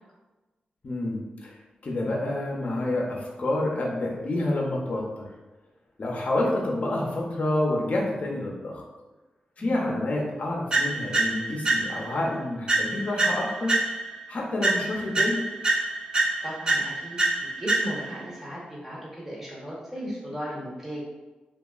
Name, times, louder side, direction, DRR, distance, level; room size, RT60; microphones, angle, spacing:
voice 1, 0.8-1.6 1.8-5.3 6.0-8.8 9.6-13.7 14.3-15.4, left 1 dB, 50° left, -2 dB, 0.6 m, -28 dB
sound 1, 10.7-12.2 12.7-14.2 14.6-18.2, right 2 dB, 30° right, 0.5 m, -26 dB
voice 2, 16.4-21.0, equal, 10° right, -6 dB, 0.9 m, -36 dB
2.8 x 2.3 x 2.3 m, 1.2 s
cardioid pair, 85°, 3 cm